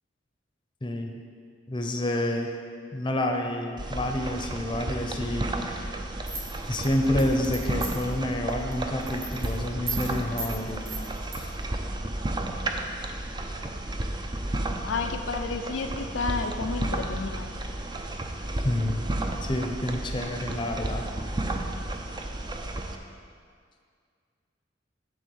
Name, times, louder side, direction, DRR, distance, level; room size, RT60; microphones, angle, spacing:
voice 1, 0.8-1.1 1.7-2.6 2.9-6.0 6.7-11.1 11.3-11.6 18.6-19.0 19.4-21.1, left 1 dB, 25° left, 3 dB, 0.7 m, -29 dB
sound 1, 3.8-23.0, right 1 dB, 25° right, 0.5 m, -32 dB
sound 2, 6.3-8.1 8.5-8.7 9.0-9.5 9.9-10.1 10.4-10.5 10.9-11.4, right 3 dB, 50° right, 1.4 m, -35 dB
voice 2, 14.8-17.5, left 4 dB, 80° left, 6 dB, 0.4 m, -31 dB
9.9 x 3.6 x 7.0 m, 2.1 s
head